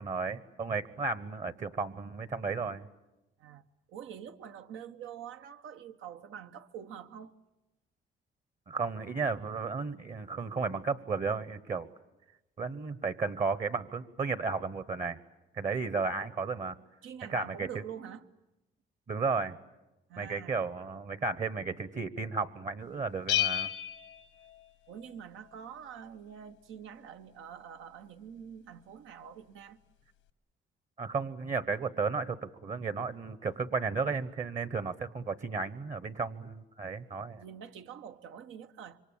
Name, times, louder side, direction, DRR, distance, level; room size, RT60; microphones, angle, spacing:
voice 1, 0.0-2.9 8.7-11.9 12.6-15.2 15.5-16.8 17.3-17.7 19.1-19.6 20.2-23.7 31.0-37.4, right 4 dB, 40° right, 1.1 m, -33 dB
voice 2, 3.4-7.3 17.0-18.3 20.1-20.6 24.9-29.8 37.4-39.0, right 8 dB, 85° right, 1.1 m, -46 dB
Bell, 23.3-25.1, left 12 dB, 85° left, 1.1 m, -32 dB
26.5 x 24.0 x 8.7 m
cardioid pair, 90°, 20 cm